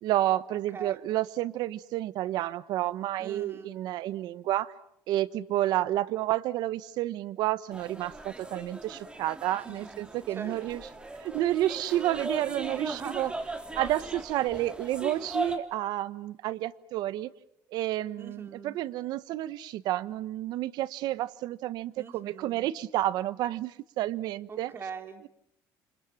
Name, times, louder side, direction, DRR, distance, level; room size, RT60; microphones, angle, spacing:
voice 1, 0.0-4.7 5.1-10.8 11.2-13.3 13.8-17.3 17.7-24.7, right 14 dB, 70° right, 16 dB, 1.1 m, -30 dB
voice 2, 3.2-3.8 9.6-10.0 10.3-10.6 12.7-13.3 18.2-18.8 22.0-22.7 24.5-25.2, right 5 dB, 30° right, 7 dB, 3.1 m, -41 dB
sound 1, 7.7-15.6, right 2 dB, 15° right, 3.3 m, -38 dB
29.0 x 26.5 x 7.6 m, 0.73 s
cardioid pair, 125°, 7 cm